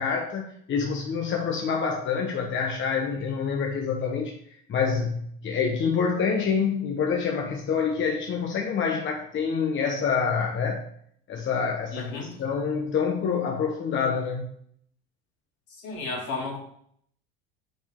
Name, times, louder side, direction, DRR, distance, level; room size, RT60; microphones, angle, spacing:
voice 1, 0.0-4.3 4.7-10.8 11.3-14.5, left 6 dB, 40° left, 2 dB, 1.0 m, -27 dB
voice 2, 11.9-12.3 15.8-16.6, left 3 dB, 70° left, -2 dB, 2.9 m, -32 dB
7.0 x 5.2 x 3.7 m, 0.66 s
supercardioid pair, 90°, 30 cm